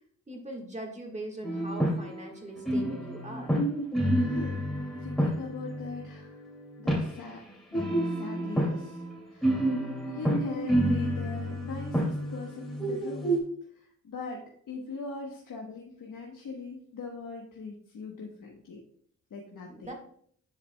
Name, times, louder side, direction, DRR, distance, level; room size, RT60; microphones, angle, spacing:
voice 1, 0.3-3.5 19.7-19.9, right 2 dB, 20° right, 1 dB, 1.7 m, -41 dB
sound 1, 1.4-2.3 2.6-7.1 7.7-13.4, right 1 dB, ahead, 2.5 m, -29 dB
voice 2, 4.1-4.7 5.0-6.4 6.8-7.4 7.7-9.0 9.3-9.8 10.0-13.4 13.7-18.8 19.3-19.9, left 4 dB, 70° left, -1 dB, 1.2 m, -41 dB
10.0 x 4.8 x 2.3 m, 0.62 s
cardioid pair, 60°, 34 cm